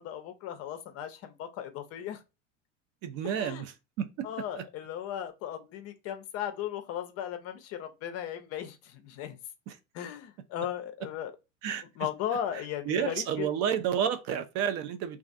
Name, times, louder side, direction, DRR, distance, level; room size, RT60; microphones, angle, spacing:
voice 1, 0.0-2.2 3.2-3.6 4.2-9.4 9.9-11.3 12.0-13.5, left 10 dB, 40° left, 0.5 m, -36 dB
voice 2, 3.0-3.7 4.0-4.3 9.7-9.8 11.6-11.8 12.9-15.2, right 8 dB, 45° right, 0.4 m, -30 dB
2.4 x 2.3 x 2.4 m
hypercardioid pair, 85°, 36 cm